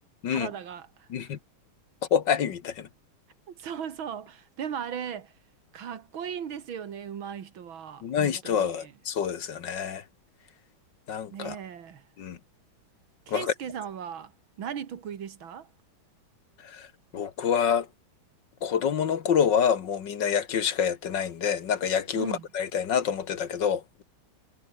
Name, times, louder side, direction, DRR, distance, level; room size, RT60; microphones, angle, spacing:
voice 1, 0.3-1.3 3.5-5.3 5.7-8.9 11.3-12.0 13.3-14.3 14.6-15.7 22.1-22.5, right 8 dB, 70° right, 2.3 m, -37 dB
voice 2, 2.1-2.9 8.0-10.0 11.1-11.6 12.2-12.4 13.3-13.5 16.6-16.9 17.1-17.9 18.6-24.0, left 7 dB, 60° left, 1.9 m, -27 dB
omnidirectional pair, 2.3 m